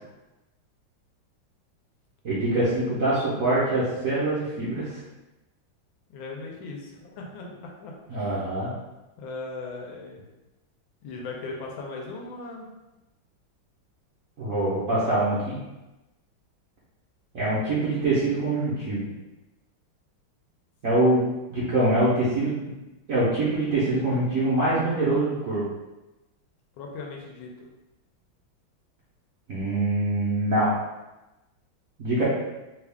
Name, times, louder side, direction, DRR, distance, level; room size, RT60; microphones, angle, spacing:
voice 1, 2.2-4.9 8.1-8.7 14.4-15.6 17.3-19.1 20.8-21.2 21.5-22.7 23.1-25.6 29.5-30.7 32.0-32.2, right 2 dB, 55° right, -9 dB, 0.9 m, -24 dB
voice 2, 6.1-7.5 7.8-8.4 9.2-10.2 11.0-12.7 20.9-21.1 26.8-27.7, left 3 dB, 75° left, 0 dB, 1.3 m, -38 dB
3.4 x 2.3 x 3.4 m, 1.0 s
omnidirectional pair, 2.3 m